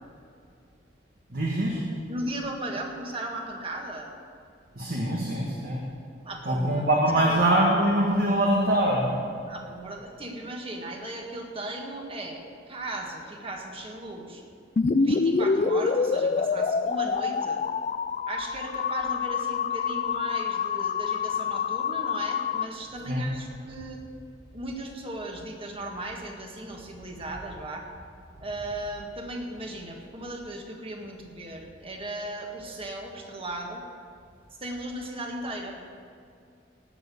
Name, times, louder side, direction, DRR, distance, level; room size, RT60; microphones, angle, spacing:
voice 1, 1.3-1.8 4.7-5.8 6.4-9.1 23.1-23.2, right 1 dB, 55° right, -2 dB, 1.6 m, -23 dB
voice 2, 2.1-4.1 6.2-7.4 9.5-14.4 15.0-17.6 18.3-24.0 24.5-27.9 28.4-33.8 34.5-35.8, right 1 dB, 30° right, 1 dB, 1.8 m, -37 dB
sound 1, 14.8-22.6, left 5 dB, 40° left, 0.4 m, -26 dB
17.5 x 6.7 x 7.0 m, 2.4 s
head